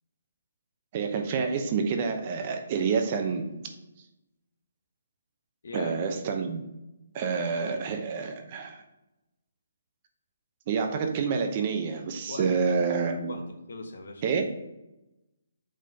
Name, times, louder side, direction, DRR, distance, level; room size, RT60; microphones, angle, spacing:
voice 1, 0.9-3.6 5.7-6.7 7.1-8.8 10.7-13.4 14.2-14.5, right 5 dB, 35° right, 5 dB, 0.8 m, -28 dB
voice 2, 5.6-6.1 12.3-12.8 13.3-14.2, left 3 dB, 65° left, 4 dB, 1.2 m, -40 dB
5.6 x 3.7 x 5.1 m, 0.96 s
hypercardioid pair, 150°, 0 cm